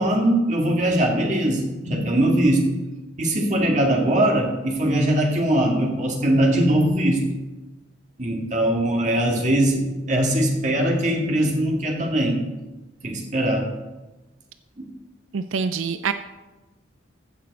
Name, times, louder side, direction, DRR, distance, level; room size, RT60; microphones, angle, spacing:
voice 1, 0.0-2.7 3.2-7.3 8.2-12.4 13.0-13.7 14.8-14.9, right 1 dB, 35° right, 0 dB, 1.9 m, -21 dB
voice 2, 15.3-16.1, right 5 dB, 90° right, 11 dB, 0.4 m, -25 dB
15.0 x 6.0 x 4.1 m, 1.1 s
head